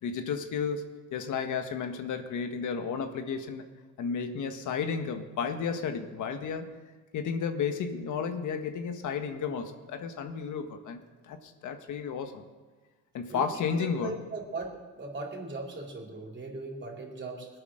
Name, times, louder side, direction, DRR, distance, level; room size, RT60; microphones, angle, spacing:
voice 1, 0.0-3.6 4.0-6.7 7.1-12.4 13.1-14.2, left 6 dB, 75° left, 6 dB, 1.5 m, -33 dB
voice 2, 13.7-17.5, right 2 dB, 40° right, -1 dB, 4.2 m, -39 dB
21.0 x 8.7 x 6.5 m, 1.3 s
cardioid pair, 90°, 30 cm